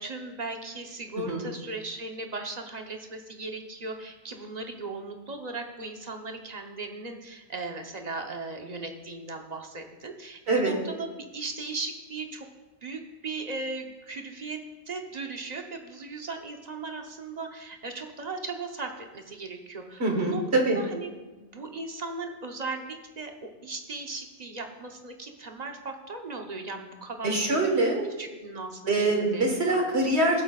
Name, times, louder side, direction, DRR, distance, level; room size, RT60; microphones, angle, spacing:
voice 1, 0.0-11.1 11.3-12.5 12.8-14.6 14.9-20.4 20.7-27.6 28.2-29.4, right 3 dB, 40° right, 3 dB, 1.0 m, -37 dB
voice 2, 20.0-20.8 27.2-28.1 28.9-30.4, right 2 dB, 65° right, 1 dB, 1.8 m, -24 dB
17.5 x 7.9 x 2.4 m, 1.2 s
omnidirectional pair, 1.2 m